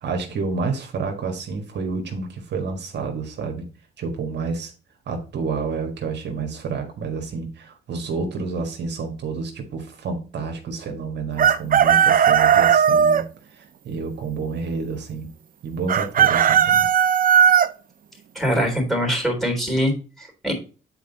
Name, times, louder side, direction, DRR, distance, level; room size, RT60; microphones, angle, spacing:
voice 1, 0.0-3.7 4.0-4.7 5.1-13.2 13.5-15.3 15.6-16.9, right 4 dB, 60° right, 3 dB, 1.7 m, -29 dB
Chicken rooster, 11.4-13.2 15.9-17.7, right 8 dB, 45° right, 0.6 m, -16 dB
voice 2, 18.4-20.5, equal, ahead, 2 dB, 3.5 m, -23 dB
8.1 x 4.5 x 4.0 m, 0.36 s
cardioid pair, 90°, 20 cm